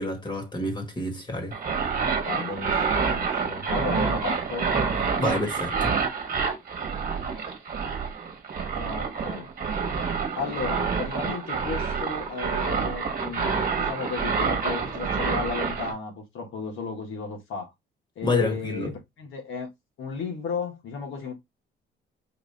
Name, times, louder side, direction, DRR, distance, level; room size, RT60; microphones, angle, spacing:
voice 1, 0.0-1.5 5.2-5.9 18.2-18.9, left 2 dB, 20° left, 1.5 m, -28 dB
sound 1, 1.5-15.9, right 5 dB, 45° right, 1.2 m, -27 dB
voice 2, 2.2-4.7 8.8-9.5 10.3-17.7 18.2-19.7 20.0-21.3, left 5 dB, 80° left, 1.5 m, -34 dB
4.7 x 2.5 x 3.3 m
cardioid pair, 90°, 20 cm